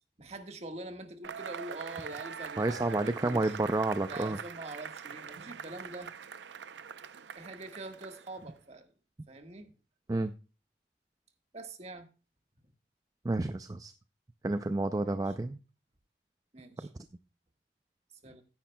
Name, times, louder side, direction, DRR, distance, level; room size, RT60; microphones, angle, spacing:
voice 1, 0.2-3.6 4.1-6.1 7.3-8.9 9.3-9.7 11.5-12.1 15.0-15.3 16.5-16.9 18.2-18.4, right 2 dB, 40° right, 5 dB, 1.5 m, -44 dB
Cheering / Applause / Crowd, 1.2-8.5, right 7 dB, 90° right, 0.6 m, -44 dB
voice 2, 2.6-4.4 10.1-10.3 13.2-13.9 14.4-15.6, right 2 dB, 20° right, 10 dB, 0.4 m, -30 dB
15.0 x 10.5 x 2.2 m, 0.33 s
head